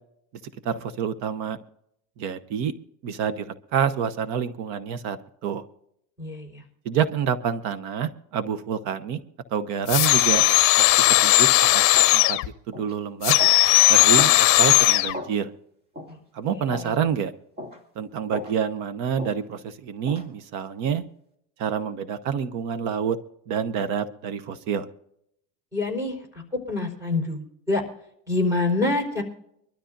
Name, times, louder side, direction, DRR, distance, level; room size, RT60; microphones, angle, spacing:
voice 1, 0.6-1.6 2.2-2.7 3.0-5.2 5.4-5.6 6.8-9.2 9.5-10.4 10.8-10.9 11.2-11.5 11.7-12.4 12.7-13.3 13.9-15.5 16.3-17.3 18.0-21.0 21.6-23.2 23.5-24.9, right 7 dB, 55° right, 11 dB, 1.0 m, -27 dB
voice 2, 6.2-6.6 16.1-16.2 16.5-16.9 25.7-27.8 28.3-29.2, left 2 dB, 10° right, -2 dB, 4.4 m, -27 dB
sound 1, 9.9-12.5 13.2-15.1, left 18 dB, 55° left, 0.8 m, -17 dB
sound 2, 11.2-11.4 11.9-12.2 12.7-12.9 13.4-13.6 14.2-14.4 15.1-15.3 15.9-16.1 16.7-17.0 17.6-17.8 18.3-18.6 19.2-19.4 20.1-20.3, equal, 30° right, 2.8 m, -35 dB
24.5 x 13.0 x 2.6 m, 0.74 s
cardioid pair, 155°, 34 cm